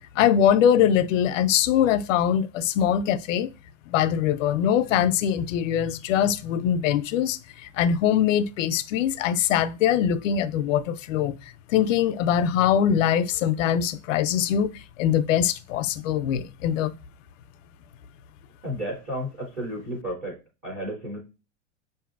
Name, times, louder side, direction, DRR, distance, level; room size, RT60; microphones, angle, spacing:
voice 1, 0.2-3.5 3.9-11.3 11.7-16.9, left 9 dB, 75° left, 0.5 m, -22 dB
voice 2, 18.6-20.4 20.6-21.2, equal, 15° right, 0.4 m, -32 dB
5.8 x 2.6 x 2.4 m
supercardioid pair, 175°, 39 cm